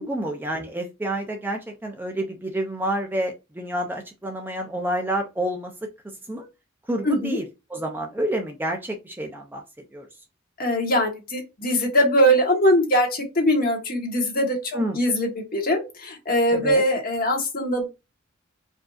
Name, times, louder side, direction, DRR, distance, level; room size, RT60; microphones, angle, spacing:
voice 1, 0.0-5.7 6.3-6.5 6.9-7.4 7.7-9.6 9.9-10.1 14.7-15.0 16.5-16.8, right 1 dB, 10° right, 3 dB, 0.5 m, -28 dB
voice 2, 7.0-7.4 10.6-17.9, equal, 45° left, 2 dB, 1.3 m, -22 dB
4.7 x 2.7 x 2.4 m, 0.25 s
head